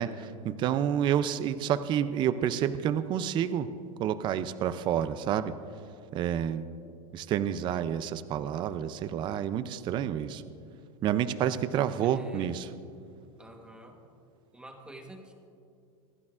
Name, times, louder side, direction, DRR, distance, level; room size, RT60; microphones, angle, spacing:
voice 1, 0.0-3.7 4.0-5.5 6.1-6.7 7.1-10.4 11.0-12.7, right 9 dB, 25° right, 13 dB, 0.4 m, -29 dB
voice 2, 12.0-12.6 13.4-14.0 14.5-15.3, right 1 dB, 5° right, 3 dB, 1.1 m, -48 dB
26.0 x 12.0 x 2.4 m, 2.5 s
supercardioid pair, 155°, 18 cm